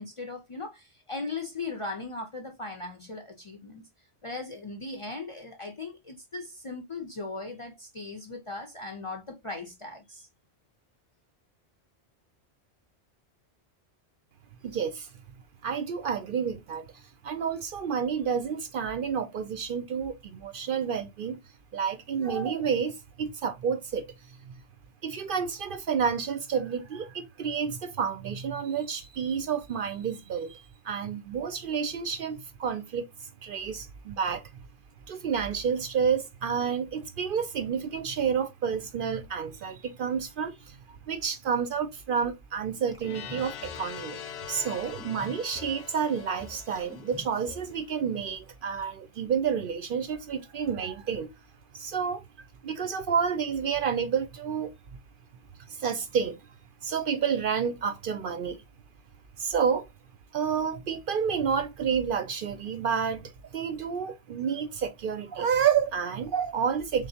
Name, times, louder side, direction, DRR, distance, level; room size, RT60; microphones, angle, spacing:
voice 1, 0.0-3.8 4.2-10.3, left 3 dB, 40° left, 0.5 m, -38 dB
voice 2, 14.6-15.1 15.6-21.4 21.7-24.5 25.0-34.5 35.1-44.2 44.5-51.3 51.7-52.2 52.6-54.7 55.7-56.4 56.8-58.6 59.4-59.9 60.3-67.1, right 7 dB, 60° right, 0.6 m, -30 dB
sound 1, 42.9-43.9 44.5-44.6 44.8-45.8 46.2-47.8, left 1 dB, 5° right, 0.6 m, -46 dB
sound 2, 43.0-47.9, left 9 dB, 70° left, 0.8 m, -43 dB
3.8 x 3.3 x 2.7 m
omnidirectional pair, 1.1 m